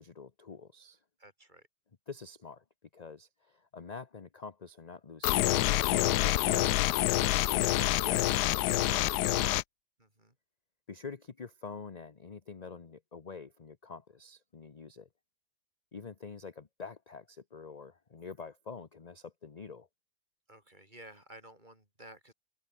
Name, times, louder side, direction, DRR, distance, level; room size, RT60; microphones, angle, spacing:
voice 1, 0.0-1.0 2.1-2.6 2.9-6.9 7.5-9.5 10.9-15.1 15.9-19.9, left 5 dB, 30° left, 0.9 m, -46 dB
voice 2, 1.2-1.7 10.0-10.3 20.5-22.3, right 1 dB, 25° right, 6.2 m, -53 dB
sound 1, 5.2-9.6, left 16 dB, 85° left, 1.2 m, -27 dB
omnidirectional pair, 1.7 m